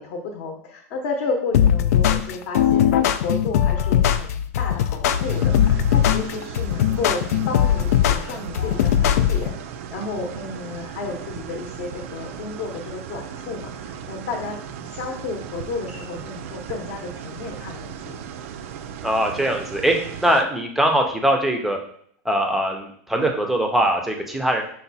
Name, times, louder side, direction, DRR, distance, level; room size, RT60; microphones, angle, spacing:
voice 1, 0.0-14.6 14.9-18.2, left 3 dB, 45° left, 1 dB, 0.8 m, -32 dB
sound 1, 1.5-9.5, left 10 dB, 75° left, 0.3 m, -19 dB
sound 2, 5.1-20.4, right 8 dB, 60° right, 0.4 m, -37 dB
voice 2, 19.0-20.0 20.2-21.8 22.3-24.6, right 1 dB, ahead, 2 dB, 0.5 m, -21 dB
5.7 x 2.2 x 4.0 m, 0.62 s
supercardioid pair, 165°, 8 cm